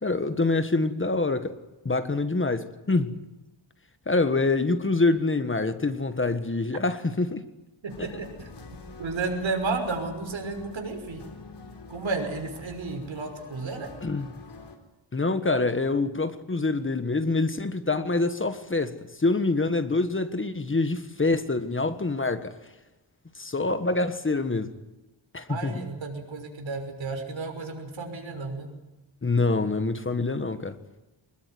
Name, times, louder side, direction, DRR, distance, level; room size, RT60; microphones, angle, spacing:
voice 1, 0.0-1.6 1.8-3.2 4.1-7.4 8.0-8.2 14.0-14.3 15.1-22.5 23.3-24.7 25.3-25.8 29.2-30.8, left 3 dB, 25° left, 1.5 m, -26 dB
voice 2, 7.8-8.3 8.7-11.2 11.9-13.9 25.5-28.7, right 3 dB, 75° right, 6.2 m, -32 dB
sound 1, 7.9-14.8, left 3 dB, 60° left, 4.4 m, -46 dB
26.0 x 21.0 x 9.5 m
wide cardioid pair, 155°, 46 cm